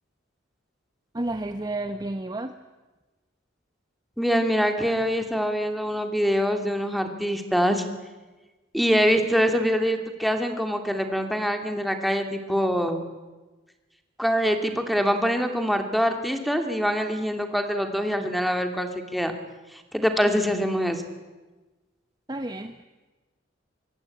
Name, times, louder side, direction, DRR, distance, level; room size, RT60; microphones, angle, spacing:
voice 1, 1.1-2.6 22.3-22.8, right 2 dB, 20° right, 8 dB, 1.0 m, -31 dB
voice 2, 4.2-7.8 8.7-13.1 14.2-19.3 19.9-21.0, equal, ahead, 5 dB, 2.6 m, -24 dB
25.0 x 23.5 x 8.6 m, 1.2 s
head